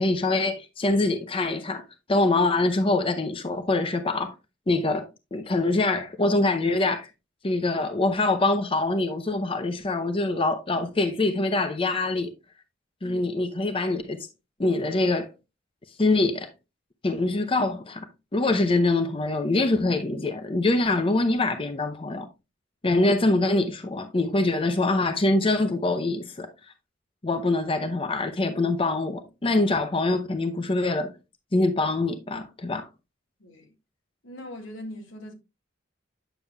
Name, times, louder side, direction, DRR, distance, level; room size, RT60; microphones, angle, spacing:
voice 1, 0.0-1.8 2.1-4.3 4.7-7.1 7.4-12.3 13.0-14.3 14.6-15.3 16.0-16.5 17.0-18.1 18.3-22.3 22.8-26.5 27.2-31.1 31.5-32.9, left 2 dB, 30° left, 0.7 m, -24 dB
voice 2, 33.4-33.7 34.2-35.3, left 1 dB, 85° left, 1.9 m, -40 dB
9.0 x 6.8 x 2.3 m
head